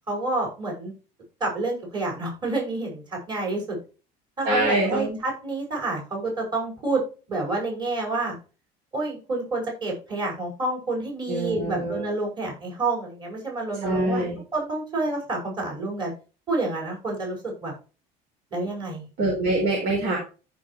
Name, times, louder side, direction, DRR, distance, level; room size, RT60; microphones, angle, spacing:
voice 1, 0.1-0.9 1.4-3.8 4.4-7.0 7.3-8.3 8.9-14.2 14.5-16.1 16.5-17.7 18.5-19.4, right 2 dB, 25° right, 0 dB, 5.8 m, -29 dB
voice 2, 4.4-5.2 11.3-12.1 13.8-14.4 19.2-20.2, right 1 dB, 60° right, -2 dB, 4.4 m, -24 dB
14.5 x 5.7 x 3.2 m, 0.34 s
cardioid pair, 165°, 18 cm